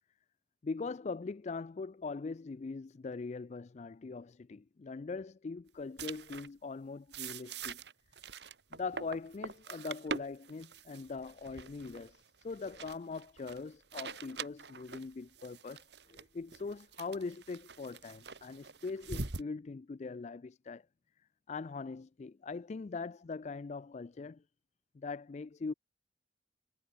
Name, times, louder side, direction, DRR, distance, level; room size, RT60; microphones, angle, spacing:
voice 1, 0.6-7.8 8.7-20.8 21.5-24.4 24.9-25.7, left 4 dB, 40° left, 0.4 m, -41 dB
sound 1, 6.0-6.5 7.1-19.4, right 4 dB, 65° right, 2.3 m, -44 dB
head